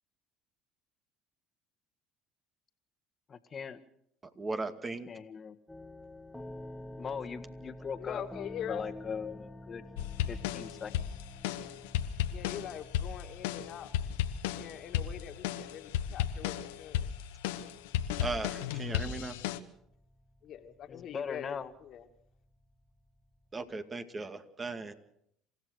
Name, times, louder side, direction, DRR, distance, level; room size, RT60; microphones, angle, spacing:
voice 1, 3.3-3.8 5.1-5.6 7.0-8.2 8.7-9.8 10.3-10.9 20.9-21.7, left 6 dB, 40° left, 9 dB, 1.8 m, -39 dB
voice 2, 4.4-5.1 18.2-19.3 23.5-24.9, right 3 dB, 25° right, 8 dB, 2.2 m, -37 dB
sound 1, 5.7-23.7, left 1 dB, 5° left, 2.3 m, -50 dB
voice 3, 8.0-8.8 12.3-13.9 14.5-17.1 20.4-22.0, left 9 dB, 55° left, 6 dB, 2.3 m, -43 dB
sound 2, 10.0-19.6, left 11 dB, 85° left, 1.1 m, -34 dB
28.0 x 15.5 x 6.5 m, 0.72 s
hypercardioid pair, 75°, 0 cm